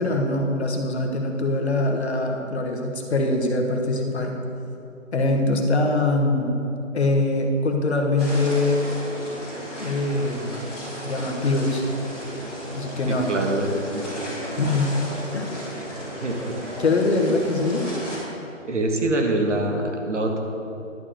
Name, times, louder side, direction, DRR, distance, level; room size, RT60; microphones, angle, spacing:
voice 1, 0.0-4.4 5.1-6.6 6.9-8.9 9.8-10.6 11.0-11.8 12.7-13.3 14.5-15.0 15.3-15.5 16.8-17.9, left 2 dB, 55° left, 2 dB, 1.4 m, -23 dB
sound 1, 8.2-18.2, equal, ahead, 0.7 m, -35 dB
voice 2, 13.1-13.7 13.9-14.3 15.8-15.9 16.2-16.6 18.7-20.4, right 2 dB, 65° right, 2 dB, 1.7 m, -25 dB
11.0 x 4.9 x 7.7 m, 3.0 s
figure-of-eight pair, 155°, 39 cm